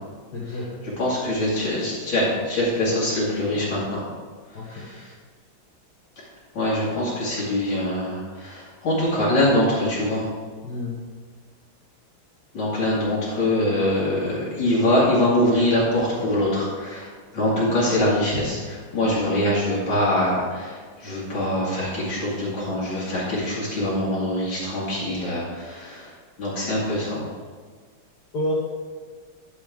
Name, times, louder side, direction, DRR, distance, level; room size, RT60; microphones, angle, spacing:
voice 1, 0.3-0.8 3.5-3.8 4.5-4.9 10.6-11.0 28.3-28.5, left 1 dB, 55° left, -6 dB, 1.9 m, -30 dB
voice 2, 1.0-4.0 4.7-5.1 6.2-6.3 6.5-10.3 12.5-26.1 26.4-27.2, left 1 dB, 75° left, -8 dB, 3.0 m, -23 dB
12.0 x 7.0 x 3.6 m, 1.5 s
omnidirectional pair, 2.2 m